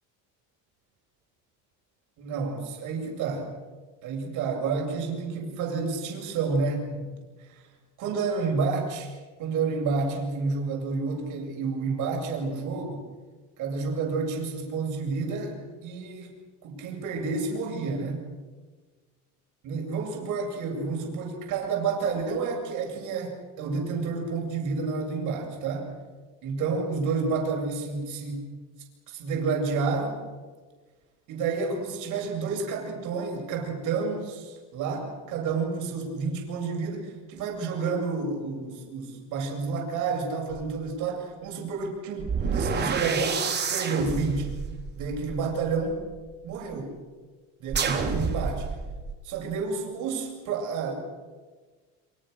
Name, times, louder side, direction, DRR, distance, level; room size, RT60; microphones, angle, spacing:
voice 1, 2.2-3.5 4.0-7.1 7.5-7.6 8.0-9.1 9.4-13.1 13.6-16.3 16.6-18.2 19.6-25.9 26.4-28.5 29.1-30.2 31.3-43.4 43.7-44.5 44.9-46.0 46.4-46.9 47.6-48.7 49.2-50.9, right 4 dB, 60° right, 1 dB, 7.9 m, -30 dB
sound 1, 40.5-40.7 42.2-46.3 47.7-49.1, right 5 dB, 30° right, 3.9 m, -29 dB
26.5 x 26.0 x 6.9 m, 1.4 s
cardioid pair, 135°, 34 cm